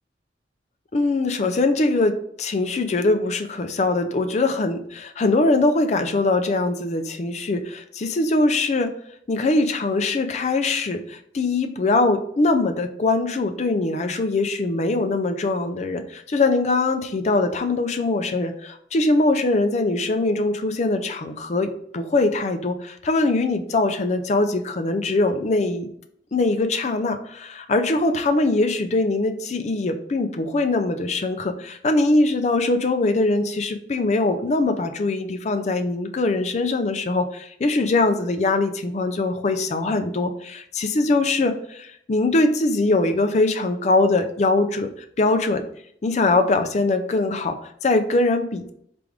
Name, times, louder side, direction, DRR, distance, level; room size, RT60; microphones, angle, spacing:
voice 1, 0.9-8.9 9.3-25.9 26.3-44.9 45.2-45.6 46.0-48.7, left 2 dB, 40° left, 7 dB, 0.4 m, -22 dB
4.7 x 2.5 x 3.5 m, 0.67 s
head